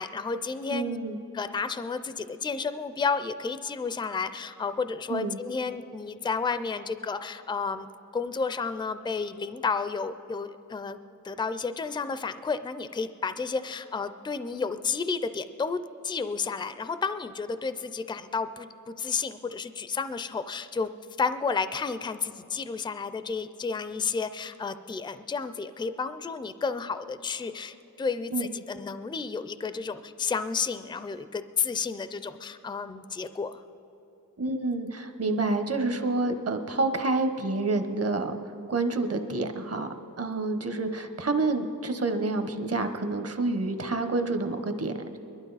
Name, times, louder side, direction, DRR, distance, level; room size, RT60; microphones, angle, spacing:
voice 1, 0.0-1.0 1.3-7.9 8.1-11.0 11.2-20.9 21.2-33.6, left 5 dB, 15° left, 12 dB, 0.4 m, -31 dB
voice 2, 0.7-1.2 5.1-5.4 28.3-28.5 34.4-38.4 38.7-39.9 40.2-45.2, right 3 dB, 50° right, 8 dB, 0.9 m, -28 dB
22.5 x 11.5 x 4.0 m, 3.0 s
wide cardioid pair, 105°, 32 cm